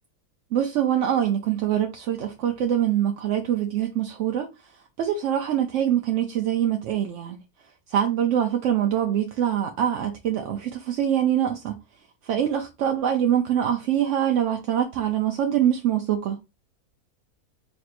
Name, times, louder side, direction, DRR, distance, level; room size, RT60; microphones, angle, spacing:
voice 1, 0.5-4.5 5.0-7.4 7.9-11.8 12.2-16.4, right 10 dB, 70° right, 0.8 m, -24 dB
4.3 x 3.2 x 2.5 m
omnidirectional pair, 1.6 m